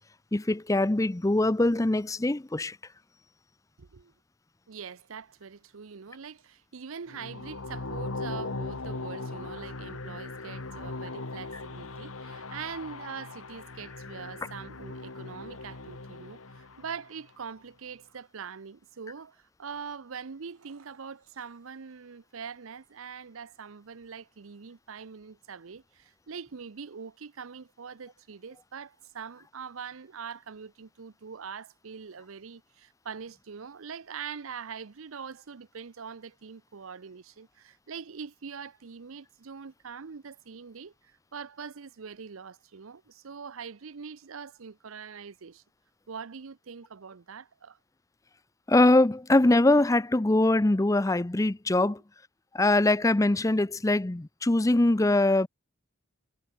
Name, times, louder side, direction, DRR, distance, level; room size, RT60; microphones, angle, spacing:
voice 1, 0.3-2.8 48.7-52.0 52.5-55.5, left 2 dB, 15° left, 0.5 m, -23 dB
voice 2, 3.8-4.1 4.7-45.6 46.1-47.8 51.9-52.0, right 6 dB, 75° right, 0.7 m, -43 dB
sound 1, 7.1-17.2, left 3 dB, 80° left, 1.7 m, -39 dB
head